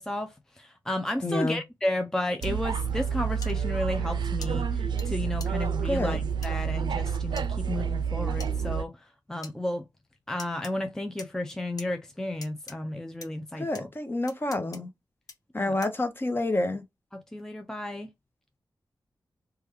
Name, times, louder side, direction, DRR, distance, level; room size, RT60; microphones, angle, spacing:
voice 1, 0.0-9.9 10.3-13.9 15.6-15.8 17.1-18.1, left 1 dB, 5° left, 0.4 m, -33 dB
voice 2, 1.2-1.6 5.8-6.2 13.6-14.9 15.5-16.8, left 2 dB, 30° left, 0.8 m, -28 dB
sound 1, 2.4-2.5 3.4-3.5 4.4-4.5 5.0-5.1 5.4-5.5 6.4-6.5 7.4-7.5 8.4-8.5 9.4-9.5 10.4-10.7 11.2-11.9 12.4-12.8 13.2-13.3 13.7-13.8 14.3-14.8 15.3-15.4 15.8-16.0, left 3 dB, 55° left, 1.0 m, -43 dB
sound 2, 2.4-8.8, right 7 dB, 85° right, 0.4 m, -29 dB
3.3 x 2.3 x 3.2 m
wide cardioid pair, 80°, 7 cm